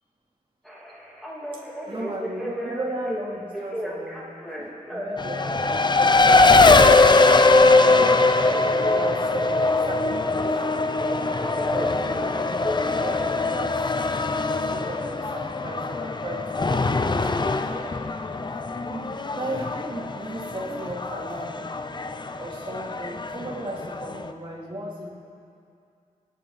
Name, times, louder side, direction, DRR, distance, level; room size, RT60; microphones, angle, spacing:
Telephone, 0.7-3.2 3.5-5.1 5.4-6.9 7.2-10.7 11.0-13.1, equal, ahead, 3.8 m, -35 dB
voice 1, 1.5-4.2 4.6-7.3 7.6-10.5 11.7-13.8 14.6-17.9 18.9-21.6 22.4-25.1, right 1 dB, 35° right, -3 dB, 3.5 m, -35 dB
Race car auto racing, 5.2-24.3, left 3 dB, 30° left, 0.7 m, -21 dB
29.5 x 10.5 x 4.3 m, 2.5 s
cardioid pair, 70°, 14 cm